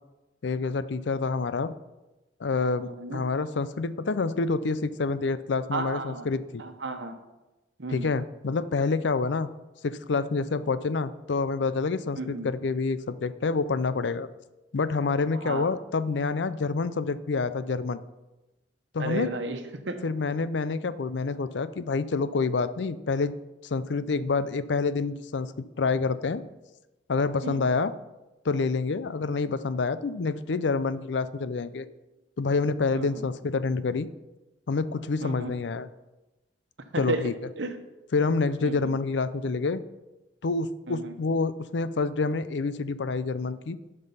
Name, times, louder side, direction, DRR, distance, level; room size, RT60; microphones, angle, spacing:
voice 1, 0.4-1.7 2.4-6.6 7.9-9.5 9.8-14.3 14.7-18.0 18.9-19.3 20.0-23.3 23.6-25.5 25.8-26.4 27.1-27.9 28.4-31.9 32.4-34.1 34.7-35.9 37.0-37.3 38.1-39.8 40.4-43.8, left 4 dB, 75° left, 14 dB, 0.5 m, -27 dB
voice 2, 2.8-3.2 5.7-6.3 6.6-7.2 7.8-8.1 12.2-12.5 15.3-15.7 19.0-20.0 27.4-27.6 32.9-33.2 35.2-35.5 36.9-37.3 37.6-37.7 38.6-38.9 40.9-41.1, right 2 dB, 85° right, 7 dB, 1.1 m, -33 dB
12.0 x 5.5 x 5.5 m, 1.0 s
head